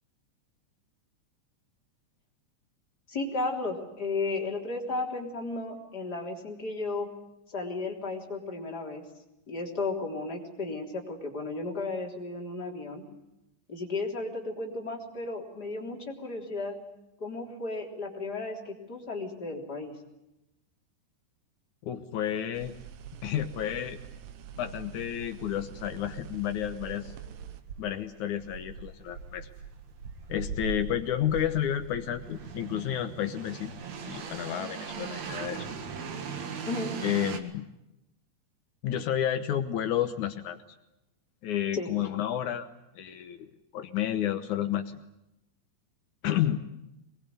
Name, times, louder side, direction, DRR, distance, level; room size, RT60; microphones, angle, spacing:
voice 1, 3.1-7.1 7.5-9.0 9.5-13.1 13.7-16.8 17.2-20.0 36.7-37.0 41.7-41.9, left 3 dB, 25° left, 0 dB, 3.6 m, -34 dB
voice 2, 21.8-22.8 23.2-24.0 24.6-27.1 27.8-29.5 30.3-33.8 34.1-35.7 37.0-37.7 38.8-40.6 41.4-42.7 43.0-45.0 46.2-46.6, left 11 dB, 75° left, 7 dB, 1.8 m, -31 dB
sound 1, 22.5-27.6, right 8 dB, 65° right, 2.7 m, -45 dB
sound 2, 27.4-37.4, right 6 dB, 50° right, 2.4 m, -39 dB
23.0 x 21.5 x 9.4 m, 0.89 s
omnidirectional pair, 5.1 m